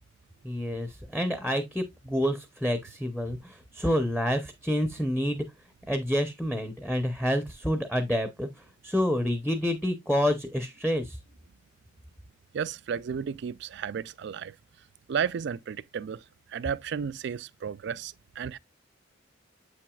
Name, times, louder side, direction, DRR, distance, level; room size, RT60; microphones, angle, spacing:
voice 1, 0.4-5.4 5.9-11.2, equal, ahead, 0.6 m, -28 dB
voice 2, 12.5-14.5 15.1-16.2 16.5-18.6, right 7 dB, 60° right, 0.3 m, -33 dB
7.7 x 5.9 x 2.3 m
head